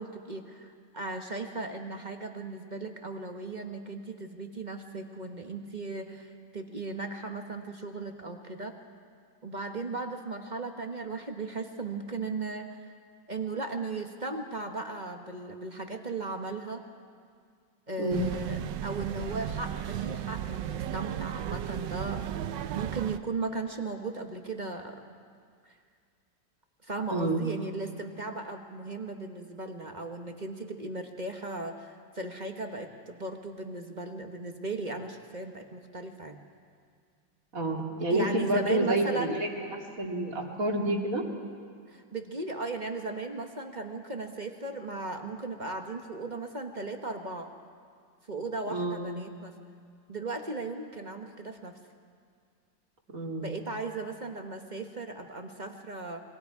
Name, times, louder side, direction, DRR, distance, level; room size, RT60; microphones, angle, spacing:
voice 1, 0.0-8.7 9.4-12.9 13.3-16.8 17.9-22.2 22.7-25.1 25.6-25.7 26.8-36.4 38.1-39.4 41.9-47.5 48.3-49.5 50.1-51.8 53.4-56.2, right 3 dB, 30° right, 4 dB, 1.1 m, -37 dB
voice 2, 18.0-18.4 27.1-27.4 37.5-39.7 40.0-41.2 48.7-49.1 53.1-53.5, right 1 dB, 50° right, 0 dB, 2.6 m, -29 dB
sound 1, 18.1-23.2, right 11 dB, 80° right, 1.3 m, -35 dB
28.5 x 22.5 x 4.7 m, 2.2 s
omnidirectional pair, 2.0 m